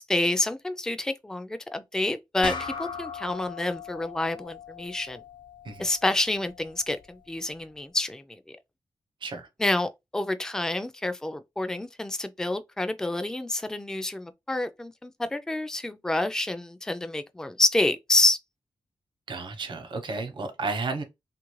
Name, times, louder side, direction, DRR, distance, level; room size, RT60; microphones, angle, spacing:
voice 1, 0.0-5.2 5.8-8.6 9.6-18.4, left 2 dB, 5° left, 0.3 m, -28 dB
sound 1, 2.4-7.2, left 5 dB, 65° left, 0.9 m, -40 dB
voice 2, 19.3-21.0, right 3 dB, 75° right, 0.8 m, -32 dB
2.9 x 2.5 x 3.0 m
wide cardioid pair, 95°, 8 cm